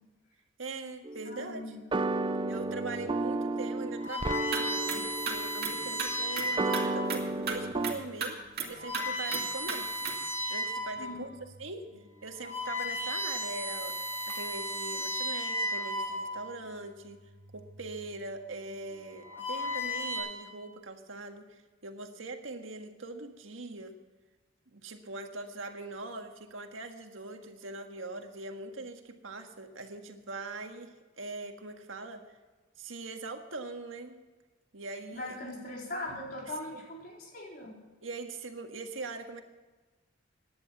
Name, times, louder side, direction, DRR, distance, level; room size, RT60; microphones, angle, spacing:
voice 1, 0.6-1.8 2.5-8.4 8.7-10.1 10.5-11.3 11.6-13.9 14.3-17.2 17.5-24.0 24.7-32.4 32.8-34.2 34.7-35.4 36.7-36.8 38.0-39.4, right 3 dB, 90° right, 5 dB, 1.7 m, -42 dB
sound 1, 1.0-7.9, right 2 dB, 25° right, 0.5 m, -33 dB
voice 2, 1.3-1.8 11.0-11.2 35.1-37.8, left 1 dB, 50° left, -1 dB, 4.2 m, -40 dB
sound 2, 2.8-3.1 3.7-7.1 7.8-8.0 8.6-11.0 11.5-11.6 12.1-16.6 17.6-18.0 18.9-20.2, left 1 dB, 10° left, 5.0 m, -35 dB
sound 3, 4.5-4.6 4.9-5.0 5.3-6.1 6.4-6.5 6.7-6.8 7.1-7.2 7.5-7.6 7.8-7.9 8.2-8.3 8.6-9.0 9.3-9.4 9.7-9.8 10.0-10.1, right 5 dB, 50° right, 2.5 m, -33 dB
17.0 x 10.5 x 5.9 m, 1.2 s
head